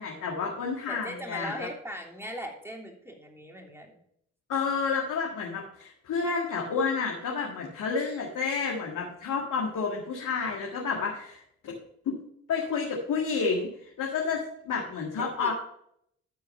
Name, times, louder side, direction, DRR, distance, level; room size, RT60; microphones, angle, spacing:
voice 1, 0.0-1.7 4.5-11.8 12.1-12.2 12.5-15.5, left 5 dB, 70° left, -1 dB, 1.9 m, -30 dB
voice 2, 0.9-4.0 15.4-15.5, right 1 dB, 10° right, 1 dB, 3.1 m, -39 dB
13.0 x 4.7 x 5.5 m, 0.71 s
supercardioid pair, 50°, 32 cm